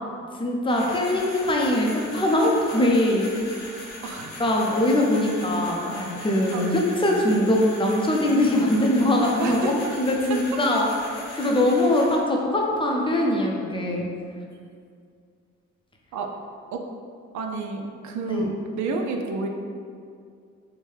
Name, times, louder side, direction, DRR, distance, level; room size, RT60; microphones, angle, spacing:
voice 1, 0.4-3.3 4.4-9.6 10.0-14.1 18.3-18.4, left 1 dB, 15° left, -1 dB, 0.6 m, -22 dB
sound 1, 0.7-12.2, left 1 dB, 75° left, 1.1 m, -40 dB
voice 2, 4.0-4.4 6.5-6.9 9.3-9.7 10.3-10.4 16.1-16.3 16.7-16.8 17.3-19.5, right 3 dB, 70° right, 3 dB, 0.5 m, -30 dB
4.5 x 2.2 x 3.2 m, 2.3 s
cardioid pair, 90°, 30 cm